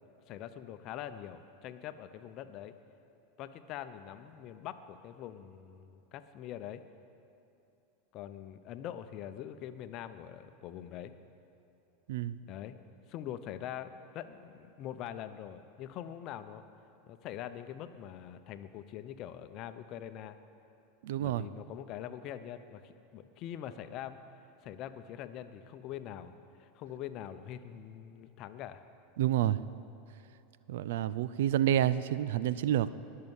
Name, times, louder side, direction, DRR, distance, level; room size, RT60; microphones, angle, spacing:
voice 1, 0.3-2.8 3.4-6.8 8.1-11.1 12.5-12.8 13.1-16.6 17.1-20.4 21.2-24.2 24.6-26.3 26.6-28.8, left 10 dB, 50° left, 11 dB, 0.8 m, -43 dB
voice 2, 12.1-12.4 21.0-21.5 29.2-29.6 30.7-32.9, right 12 dB, 75° right, 16 dB, 0.4 m, -29 dB
19.5 x 6.7 x 7.2 m, 2.8 s
hypercardioid pair, 95°, 0 cm